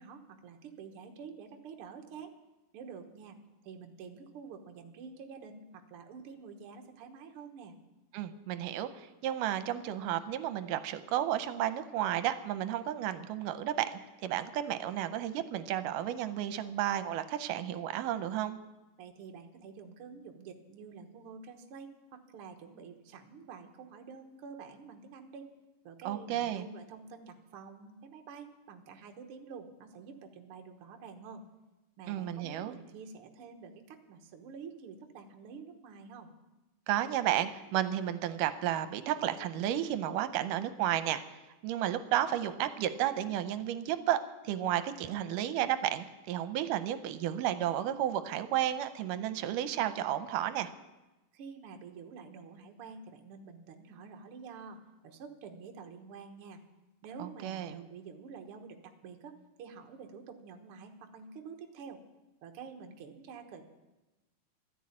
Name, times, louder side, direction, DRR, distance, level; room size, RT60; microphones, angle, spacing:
voice 1, 0.0-2.3 2.7-3.4 3.6-7.8 19.0-25.5 25.8-31.4 32.0-36.3 51.3-56.6 57.0-62.0 62.4-63.6, right 5 dB, 60° right, 4 dB, 1.6 m, -48 dB
voice 2, 8.1-13.9 14.2-18.6 26.1-26.7 32.1-32.8 36.9-41.2 41.6-44.2 44.4-50.7 57.2-57.8, right 11 dB, 80° right, 11 dB, 2.2 m, -32 dB
13.0 x 10.0 x 8.6 m, 1.1 s
omnidirectional pair, 3.8 m